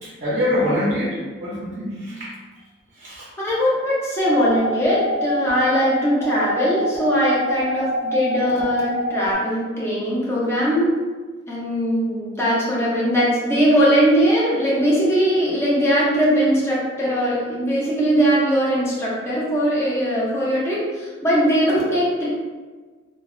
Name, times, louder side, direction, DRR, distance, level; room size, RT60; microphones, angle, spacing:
voice 1, 0.0-2.2 3.0-3.2, left 1 dB, 40° right, -7 dB, 0.6 m, -24 dB
voice 2, 3.4-11.0 11.5-22.3, equal, 15° left, -7 dB, 0.6 m, -20 dB
sound 1, 4.2-9.3, left 1 dB, 20° right, 1.3 m, -26 dB
3.1 x 2.1 x 2.3 m, 1.4 s
head